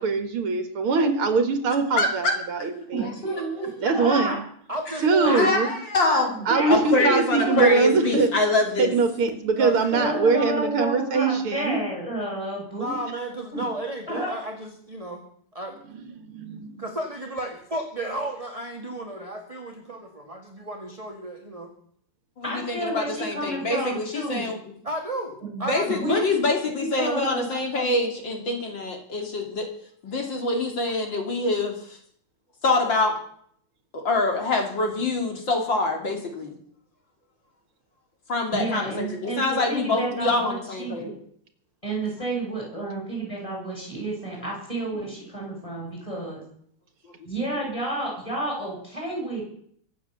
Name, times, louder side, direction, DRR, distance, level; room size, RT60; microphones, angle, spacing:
voice 1, 0.0-3.1 3.8-4.4 5.0-5.7 6.5-8.3 8.8-11.8 16.2-16.7, right 4 dB, 75° right, 7 dB, 2.7 m, -22 dB
voice 2, 1.9-2.3 2.8-3.1 3.8-3.9 5.4-6.4 6.7-8.9 22.4-24.6 25.6-29.7 30.0-32.0 32.6-33.2 33.9-36.6 38.3-41.1, left 2 dB, 60° left, 2 dB, 3.3 m, -25 dB
voice 3, 2.9-4.4 5.2-5.5 5.9-7.7 9.9-12.9 13.5-13.6 14.1-14.3 22.4-24.5 25.4-26.4 26.8-27.5 38.5-41.1 41.8-46.4 47.2-49.4, right 1 dB, 15° left, -2 dB, 8.0 m, -30 dB
voice 4, 4.7-5.5 9.5-10.0 12.8-15.2 15.5-15.7 16.8-21.7 24.8-26.3, right 1 dB, 15° right, 3 dB, 1.8 m, -33 dB
23.5 x 8.6 x 6.9 m, 0.63 s
omnidirectional pair, 2.4 m